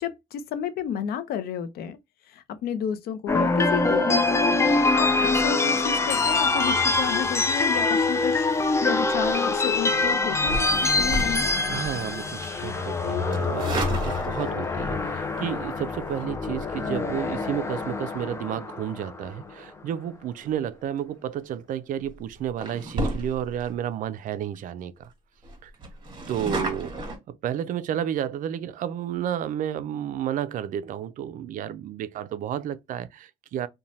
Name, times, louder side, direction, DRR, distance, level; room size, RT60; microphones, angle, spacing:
voice 1, 0.0-2.0 2.3-11.5, left 8 dB, 65° left, 0.5 m, -31 dB
sound 1, 3.3-19.5, left 3 dB, 15° left, 0.4 m, -24 dB
sound 2, 10.4-12.0 12.4-12.7 13.3-14.7 16.0-16.2 21.3-21.5 22.0-22.2 22.6-23.7 24.2-24.3 24.5-24.6 25.0-25.1 25.4-27.2, right 1 dB, 25° right, 1.2 m, -32 dB
voice 2, 11.7-25.1 25.6-25.7 26.3-33.7, right 10 dB, 50° right, 0.4 m, -31 dB
2.7 x 2.2 x 3.0 m
cardioid pair, 110°, 17 cm